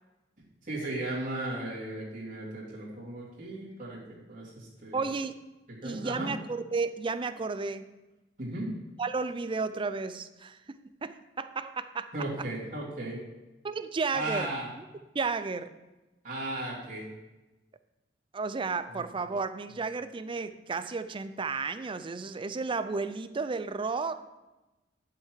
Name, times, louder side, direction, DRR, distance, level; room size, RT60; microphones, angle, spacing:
voice 1, 0.6-5.0 5.8-6.3 8.4-8.7 12.1-13.2 14.1-14.7 16.2-17.1 18.9-19.0, right 1 dB, 45° right, -7 dB, 2.8 m, -36 dB
voice 2, 4.9-5.3 5.8-8.0 9.0-12.1 13.6-14.5 15.1-15.7 18.3-24.2, right 4 dB, 30° right, 12 dB, 0.4 m, -33 dB
10.5 x 5.7 x 4.7 m, 1.1 s
head